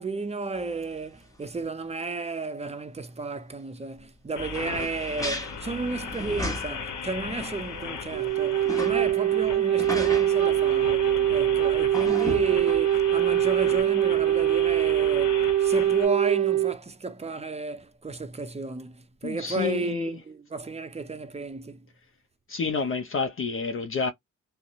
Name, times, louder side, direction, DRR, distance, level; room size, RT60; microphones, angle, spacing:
voice 1, 0.0-21.9, right 3 dB, 20° right, 0.5 m, -33 dB
sound 1, 0.6-0.7 1.2-1.3 1.5-1.6 4.5-7.0 7.4-7.5 8.0-9.0 9.8-10.3 11.9-13.1 13.5-13.7, left 1 dB, 10° left, 1.1 m, -35 dB
sound 2, 4.4-16.1, left 5 dB, 70° left, 0.8 m, -37 dB
Wind instrument woodwind instrument, 8.1-16.8, right 12 dB, 65° right, 0.6 m, -23 dB
voice 2, 19.2-20.1 22.5-24.1, left 5 dB, 45° left, 0.5 m, -29 dB
2.7 x 2.0 x 2.4 m
cardioid pair, 70°, 31 cm